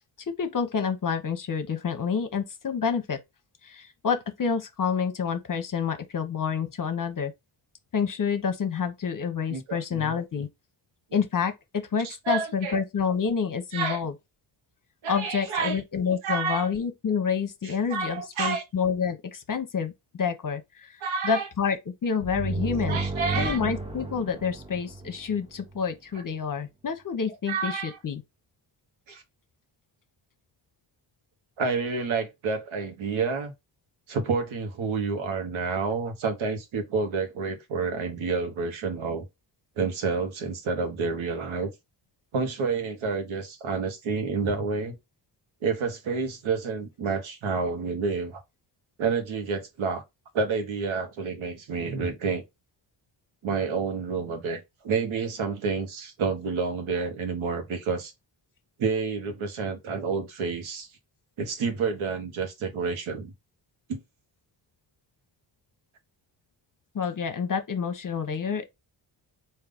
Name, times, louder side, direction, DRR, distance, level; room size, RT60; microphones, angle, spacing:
voice 1, 0.4-3.2 3.6-7.3 7.9-10.5 11.1-14.1 15.1-19.9 20.2-21.0 21.2-21.8 22.0-23.0 23.4-28.2 66.9-68.7, left 6 dB, 45° left, 0.8 m, -28 dB
voice 2, 9.5-10.2 12.0-12.8 13.7-14.0 15.0-15.8 16.2-16.7 17.6-18.6 21.0-21.5 22.9-23.6 27.5-28.0 29.1-29.2 31.6-33.5 34.1-39.3 39.8-41.7 42.3-45.0 45.6-48.4 49.0-50.0 50.3-52.4 53.4-58.1 58.8-60.9 61.4-63.3 63.9-64.0, right 4 dB, 90° right, 1.2 m, -29 dB
sound 1, 22.2-25.8, right 3 dB, 10° right, 0.8 m, -32 dB
3.8 x 2.7 x 3.5 m
cardioid pair, 70°, 46 cm